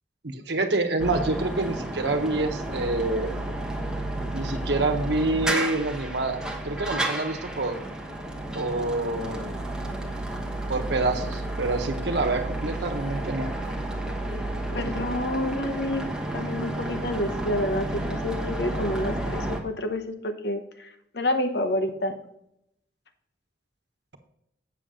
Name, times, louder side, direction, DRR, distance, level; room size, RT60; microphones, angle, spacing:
voice 1, 0.2-3.4 4.3-7.8 8.5-9.5 10.7-13.5, right 2 dB, 70° right, 5 dB, 1.2 m, -27 dB
sound 1, 1.0-19.6, right 1 dB, 5° right, 1.1 m, -31 dB
voice 2, 14.7-22.1, left 1 dB, 65° left, 7 dB, 1.0 m, -29 dB
8.2 x 7.2 x 3.8 m, 0.77 s
head